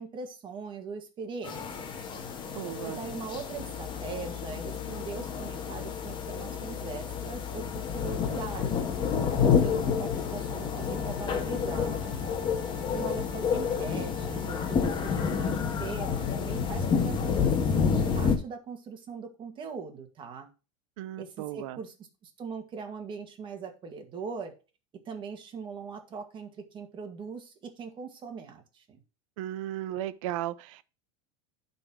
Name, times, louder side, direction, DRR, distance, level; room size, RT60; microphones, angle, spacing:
voice 1, 0.0-1.9 2.9-8.9 9.4-12.3 12.9-20.5 21.2-21.9 22.2-24.5 25.1-29.0, right 5 dB, 30° right, 1.9 m, -41 dB
sound 1, 1.4-18.4, left 6 dB, 30° left, 1.5 m, -29 dB
voice 2, 2.5-3.0 21.0-21.8 29.4-30.8, right 13 dB, 75° right, 0.7 m, -35 dB
sound 2, 3.6-17.8, left 13 dB, 45° left, 0.7 m, -41 dB
Wind instrument woodwind instrument, 7.5-17.9, left 1 dB, 5° right, 4.5 m, -50 dB
11.5 x 4.3 x 4.5 m
supercardioid pair, 145°, 17 cm